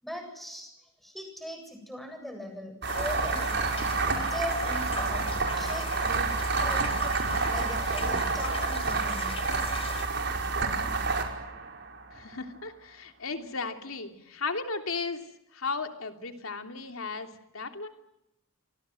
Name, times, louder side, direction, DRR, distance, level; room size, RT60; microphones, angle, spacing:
voice 1, 0.0-0.7 1.0-3.7 4.3-5.3 5.5-6.9 7.5-9.3, equal, ahead, 5 dB, 7.8 m, -40 dB
sound 1, 2.8-12.2, right 4 dB, 55° right, 5.5 m, -29 dB
sound 2, 2.9-10.1, left 4 dB, 25° left, 4.4 m, -39 dB
voice 2, 12.1-15.2 15.5-17.9, left 4 dB, 85° left, 6 dB, 3.0 m, -35 dB
30.0 x 25.0 x 7.7 m, 0.85 s
head